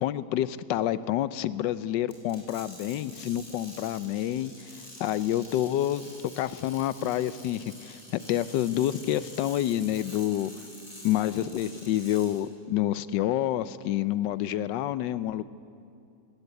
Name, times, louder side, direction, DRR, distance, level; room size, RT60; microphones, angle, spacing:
voice 1, 0.0-6.1 6.4-8.0 8.3-10.5 11.0-15.4, left 12 dB, 80° left, 16 dB, 1.3 m, -28 dB
sound 1, 2.1-12.4, left 1 dB, 20° left, 5.2 m, -47 dB
18.5 x 17.5 x 8.2 m, 2.5 s
omnidirectional pair, 1.9 m